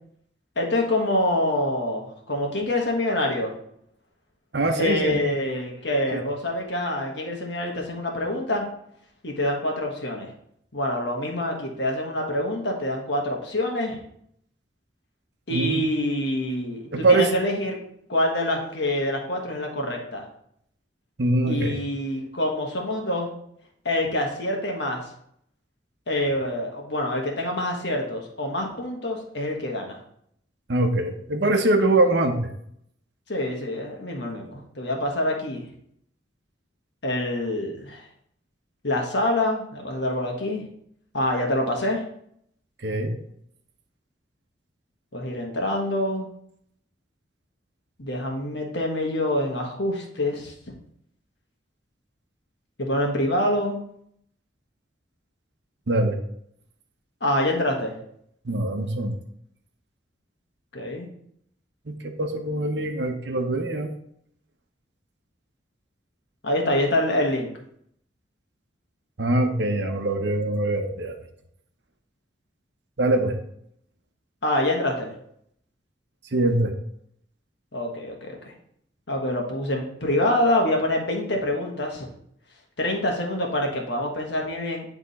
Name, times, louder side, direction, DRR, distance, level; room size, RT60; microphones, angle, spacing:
voice 1, 0.6-3.5 4.8-8.7 9.2-10.3 10.7-14.0 15.5-17.8 18.1-20.2 21.5-23.3 23.8-25.1 26.1-30.0 33.3-35.6 37.0-38.0 38.8-40.6 41.1-42.0 45.1-46.3 48.0-50.5 52.8-53.8 57.2-57.9 60.7-61.1 66.4-67.5 74.4-75.1 77.7-78.5 79.1-82.1 82.8-84.8, left 1 dB, 65° left, 1 dB, 1.4 m, -26 dB
voice 2, 4.5-5.2 6.1-6.2 15.5-15.8 16.9-17.3 21.2-21.8 30.7-32.5 42.8-43.1 55.9-56.2 58.4-59.2 61.9-63.9 69.2-71.2 73.0-73.4 76.3-76.7, right 2 dB, 65° right, 5 dB, 0.9 m, -23 dB
9.8 x 3.6 x 4.1 m, 0.70 s
head